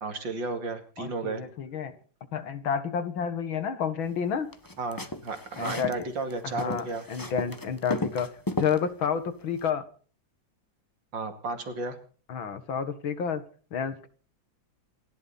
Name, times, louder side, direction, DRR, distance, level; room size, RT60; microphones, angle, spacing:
voice 1, 0.0-1.4 4.8-7.0 11.1-12.0, right 3 dB, 70° right, 7 dB, 3.0 m, -33 dB
voice 2, 1.0-2.0 2.3-4.5 5.6-5.9 6.4-8.3 8.6-9.8 12.3-13.4 13.7-14.1, left 7 dB, 80° left, 11 dB, 2.4 m, -30 dB
sound 1, 4.5-6.0 6.3-8.8, left 1 dB, 15° left, 1.0 m, -34 dB
27.5 x 12.0 x 4.2 m, 0.41 s
omnidirectional pair, 2.1 m